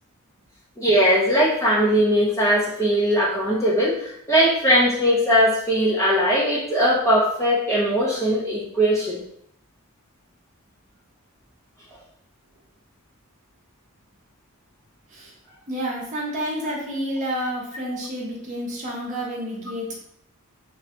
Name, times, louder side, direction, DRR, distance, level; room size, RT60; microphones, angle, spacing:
voice 1, 0.8-9.2 17.9-18.0, equal, 15° left, -9 dB, 0.7 m, -20 dB
voice 2, 15.7-20.0, equal, 35° right, -4 dB, 0.8 m, -29 dB
3.1 x 2.2 x 2.9 m, 0.71 s
head